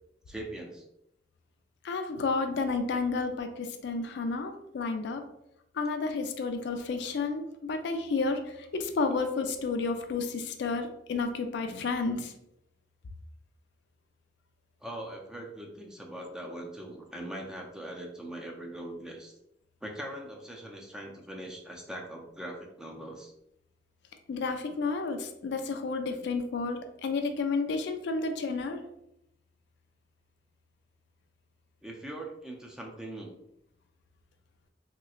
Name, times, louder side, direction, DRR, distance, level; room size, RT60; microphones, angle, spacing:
voice 1, 0.3-0.8 14.8-19.3 19.8-23.3 31.8-33.4, right 1 dB, 5° right, 0 dB, 0.4 m, -41 dB
voice 2, 1.8-5.2 5.7-12.3 24.3-28.8, left 4 dB, 70° left, 6 dB, 0.4 m, -31 dB
3.1 x 2.9 x 2.4 m, 0.81 s
head